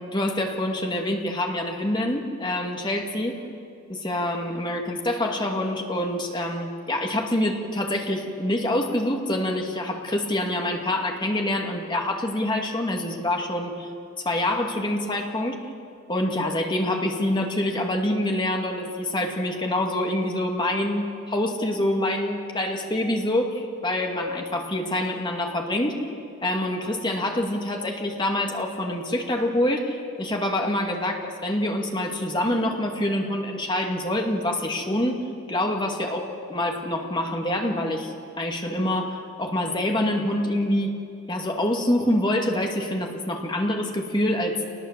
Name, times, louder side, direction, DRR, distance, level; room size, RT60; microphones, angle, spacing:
voice 1, 0.0-3.3 3.9-13.9 14.2-15.6 16.1-26.1 26.4-38.1 38.4-41.0 41.3-44.6, left 1 dB, 25° left, 1 dB, 2.3 m, -26 dB
27.5 x 20.0 x 7.5 m, 2.4 s
head